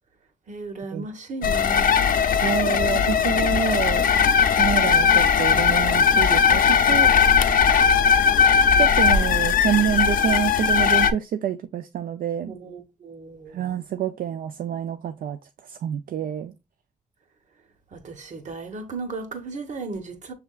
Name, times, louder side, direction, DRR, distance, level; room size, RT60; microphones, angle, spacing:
voice 1, 0.5-2.0 12.5-13.7 17.9-20.3, right 3 dB, 60° right, 1.0 m, -35 dB
sound 1, 1.4-11.1, left 7 dB, 85° left, 0.5 m, -19 dB
voice 2, 2.4-4.1 4.5-7.4 8.8-12.5 13.5-16.5, right 9 dB, 90° right, 0.4 m, -27 dB
6.5 x 3.4 x 2.3 m
wide cardioid pair, 120°, 14 cm